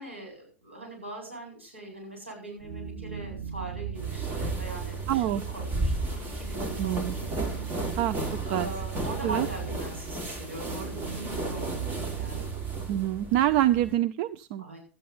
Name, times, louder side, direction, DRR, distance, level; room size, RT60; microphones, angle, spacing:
voice 1, 0.0-7.3 8.3-12.5 14.6-14.8, right 2 dB, 85° right, -1 dB, 7.9 m, -41 dB
sound 1, 2.6-12.9, right 8 dB, 65° right, 3.9 m, -37 dB
sound 2, 4.0-14.0, right 1 dB, 30° right, 3.3 m, -34 dB
voice 2, 5.1-5.4 6.8-7.1 8.0-8.2 8.5-8.7 9.2-9.5 12.9-14.6, right 13 dB, 50° right, 12 dB, 0.5 m, -26 dB
13.0 x 9.3 x 5.5 m, 0.37 s
figure-of-eight pair, 90°, 6 cm